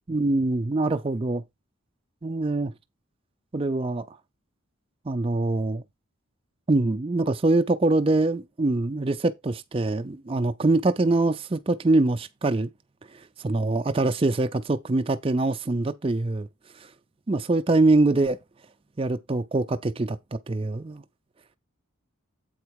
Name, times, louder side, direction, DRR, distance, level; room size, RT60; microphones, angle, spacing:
voice 1, 0.1-1.4 2.2-2.7 3.5-4.1 5.1-5.8 6.7-12.7 13.4-16.5 17.3-18.4 19.0-21.0, right 2 dB, 25° right, 0.5 m, -24 dB
7.9 x 4.4 x 4.7 m
head